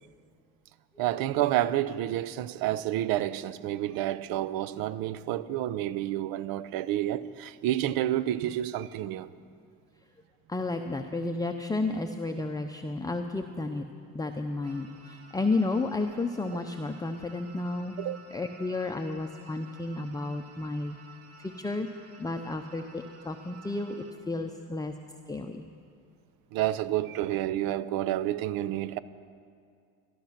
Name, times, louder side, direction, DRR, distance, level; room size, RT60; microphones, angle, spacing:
voice 1, 1.0-9.3 18.0-18.2 26.5-29.0, right 13 dB, 75° right, 0.6 m, -29 dB
voice 2, 10.5-13.9 14.1-18.0 18.3-21.0 21.4-21.9 22.2-24.9 25.3-25.7, left 2 dB, 10° left, 0.7 m, -32 dB
sound 1, 14.6-24.1, right 5 dB, 45° right, 1.5 m, -53 dB
14.5 x 12.0 x 5.9 m
supercardioid pair, 85°, 35 cm